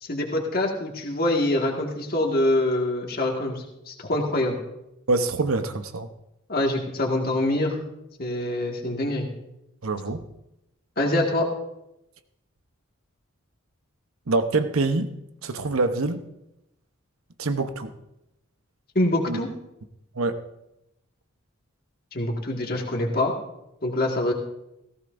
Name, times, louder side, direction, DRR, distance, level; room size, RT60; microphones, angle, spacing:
voice 1, 0.0-4.6 6.5-7.8 8.2-9.3 11.0-11.5 19.0-19.5 22.1-23.3 23.8-24.3, left 1 dB, 45° left, 0 dB, 1.9 m, -25 dB
voice 2, 5.1-6.1 9.8-10.2 14.3-15.1 15.4-16.2 17.4-17.9 19.3-19.4 20.1-20.4, right 3 dB, 85° right, 9 dB, 0.9 m, -25 dB
17.0 x 15.0 x 2.6 m, 0.86 s
head